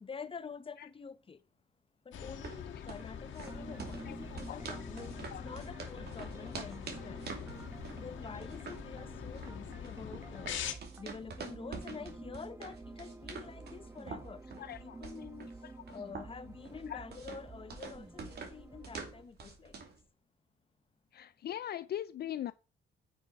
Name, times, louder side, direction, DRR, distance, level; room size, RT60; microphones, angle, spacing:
voice 1, 0.0-1.4 2.1-7.4 8.0-10.6 11.0-15.5 15.9-19.7, left 5 dB, 25° left, 0.8 m, -48 dB
sound 1, 2.1-10.7, left 8 dB, 70° left, 1.8 m, -44 dB
sound 2, 2.2-20.0, right 4 dB, 55° right, 2.6 m, -47 dB
sound 3, 3.5-19.2, right 3 dB, 15° right, 1.1 m, -50 dB
voice 2, 4.1-4.7 5.3-5.5 14.6-15.0 15.6-16.0 16.9-17.0 21.1-22.5, left 11 dB, 55° left, 0.5 m, -41 dB
9.4 x 6.2 x 4.7 m
cardioid pair, 90°, 20 cm